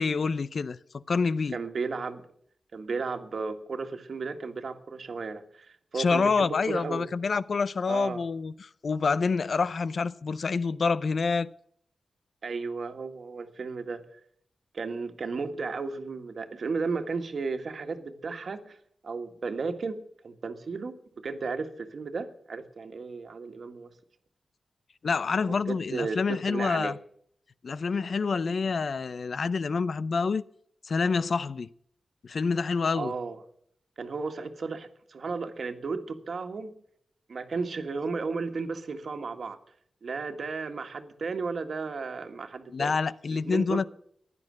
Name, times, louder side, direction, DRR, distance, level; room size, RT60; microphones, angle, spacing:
voice 1, 0.0-1.6 5.9-11.5 25.0-27.0 27.6-30.4 30.8-31.7 32.2-33.1 42.7-43.9, left 4 dB, 55° left, 0.6 m, -27 dB
voice 2, 1.5-2.2 2.7-7.1 7.9-8.2 12.4-14.0 14.7-18.8 19.0-23.9 25.4-27.0 32.9-33.4 34.0-36.8 37.3-39.6 40.0-42.9 43.3-43.9, right 4 dB, 55° right, 1.7 m, -34 dB
16.0 x 11.0 x 6.3 m
wide cardioid pair, 135°, 0 cm